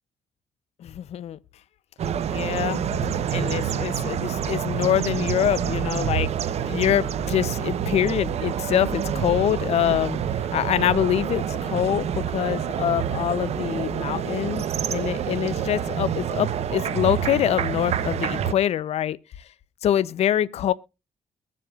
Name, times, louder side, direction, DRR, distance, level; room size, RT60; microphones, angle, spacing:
voice 1, 0.8-1.4 2.3-2.8 3.3-6.3 6.6-10.2 10.5-19.2 19.8-20.7, left 11 dB, 65° left, 0.6 m, -25 dB
sound 1, 2.0-18.5, right 8 dB, 65° right, 0.8 m, -27 dB
22.0 x 7.6 x 2.4 m
cardioid pair, 95°, 11 cm